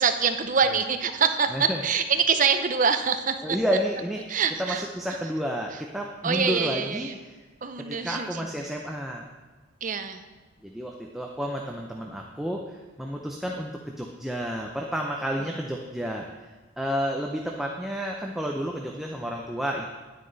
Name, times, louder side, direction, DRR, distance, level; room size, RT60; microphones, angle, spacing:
voice 1, 0.0-3.6 4.3-4.8 6.2-7.1 7.6-8.4 9.8-10.2, right 6 dB, 40° right, 8 dB, 0.6 m, -25 dB
voice 2, 3.4-7.4 7.8-9.3 10.6-16.3 16.8-19.9, equal, ahead, 0 dB, 0.6 m, -31 dB
9.9 x 9.6 x 4.0 m, 1.2 s
head